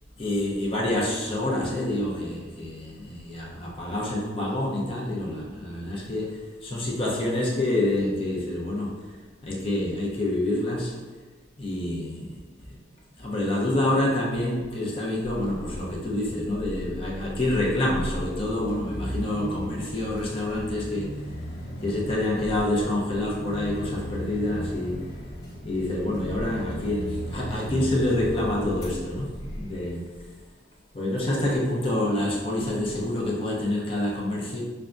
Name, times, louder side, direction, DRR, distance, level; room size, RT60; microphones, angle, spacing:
voice 1, 0.2-8.9 9.4-10.9 11.6-12.4 12.7-12.8 13.2-21.1 21.8-25.0 25.6-30.0 30.9-34.6, left 1 dB, 30° left, -4 dB, 0.7 m, -27 dB
sound 1, 15.2-29.9, equal, 60° left, 1.0 m, -37 dB
5.7 x 2.3 x 2.5 m, 1.4 s
head